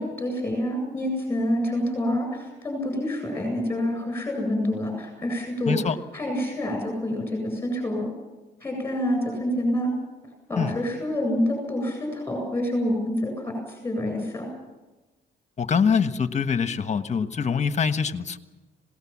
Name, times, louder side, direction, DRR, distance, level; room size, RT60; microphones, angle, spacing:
voice 1, 0.0-5.8 6.1-8.1 8.6-9.9 10.5-14.5, left 1 dB, 10° left, 3 dB, 8.0 m, -27 dB
voice 2, 5.6-6.0 10.6-10.7 15.6-18.4, left 6 dB, 35° left, 10 dB, 1.4 m, -24 dB
26.5 x 18.5 x 7.3 m, 1.1 s
cardioid pair, 90°, 20 cm